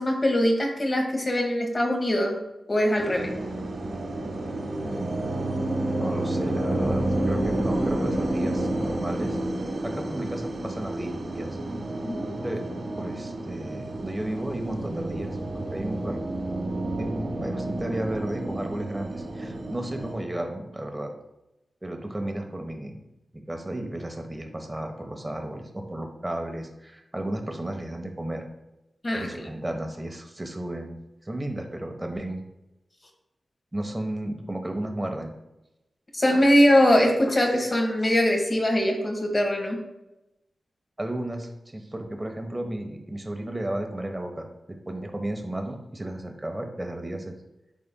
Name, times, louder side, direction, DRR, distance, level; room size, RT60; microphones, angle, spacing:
voice 1, 0.0-2.4 2.7-3.3 12.0-12.3 29.0-29.3 36.1-39.8, equal, 35° left, 2 dB, 1.5 m, -22 dB
sound 1, 3.0-20.1, right 1 dB, 80° right, 2.1 m, -30 dB
voice 2, 4.8-5.4 5.9-9.4 9.8-11.6 12.3-12.6 13.0-16.2 17.0-21.1 21.8-23.0 23.5-28.4 29.1-32.4 33.7-35.3 41.0-47.3, right 1 dB, 20° right, 4 dB, 1.1 m, -33 dB
11.0 x 4.2 x 2.2 m, 0.93 s
wide cardioid pair, 75°, 0 cm